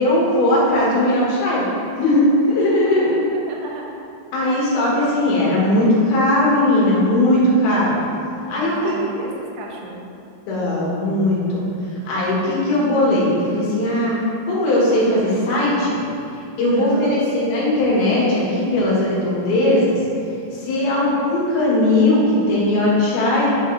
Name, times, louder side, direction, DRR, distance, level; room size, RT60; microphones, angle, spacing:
voice 1, 0.0-1.6 2.0-3.1 4.3-8.0 8.5-8.9 10.5-11.6 12.1-14.1 14.5-16.0 16.6-20.0 20.5-23.5, left 1 dB, 75° left, -6 dB, 3.6 m, -18 dB
voice 2, 2.9-3.8 4.5-4.7 8.6-10.1 16.7-17.2 20.7-21.1, right 3 dB, 70° right, -1 dB, 2.1 m, -35 dB
10.0 x 5.0 x 4.0 m, 2.5 s
omnidirectional pair, 4.5 m